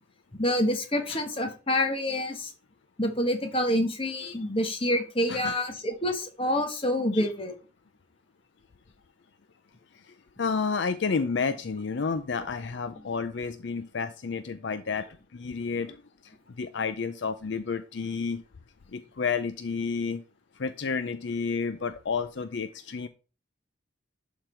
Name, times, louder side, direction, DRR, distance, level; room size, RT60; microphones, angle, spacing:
voice 1, 0.3-2.5 3.0-7.5, left 1 dB, 30° left, 5 dB, 1.4 m, -27 dB
voice 2, 10.4-16.0 16.6-18.4 18.9-20.2 20.6-23.1, left 5 dB, 65° left, 10 dB, 0.5 m, -30 dB
11.5 x 3.9 x 4.5 m, 0.34 s
head